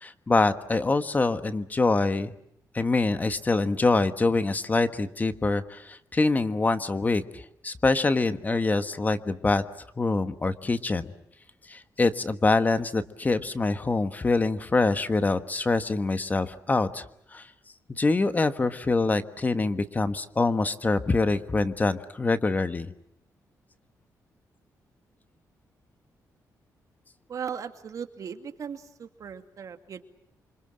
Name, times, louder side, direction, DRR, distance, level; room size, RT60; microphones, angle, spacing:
voice 1, 0.0-2.3 2.7-9.6 10.0-11.1 11.7-17.0 17.3-17.5 17.9-22.9, left 3 dB, 25° left, 11 dB, 1.3 m, -25 dB
voice 2, 27.3-30.0, right 7 dB, 60° right, 8 dB, 2.3 m, -37 dB
28.5 x 25.5 x 7.7 m, 0.74 s
cardioid pair, 120°, 7 cm